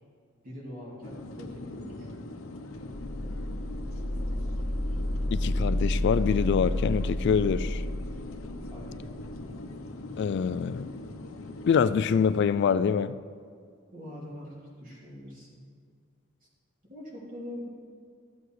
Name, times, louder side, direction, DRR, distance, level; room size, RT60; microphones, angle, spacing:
voice 1, 0.4-2.1 8.7-9.2 13.9-15.6 16.9-17.7, left 1 dB, 40° right, -5 dB, 3.1 m, -43 dB
sound 1, 1.0-12.4, left 2 dB, 80° left, 0.9 m, -42 dB
sound 2, 2.8-9.4, left 1 dB, 10° left, 1.4 m, -31 dB
voice 2, 5.3-7.8 10.2-10.9 11.7-13.2, left 6 dB, 55° left, 14 dB, 0.3 m, -25 dB
13.5 x 8.0 x 4.9 m, 2.2 s
head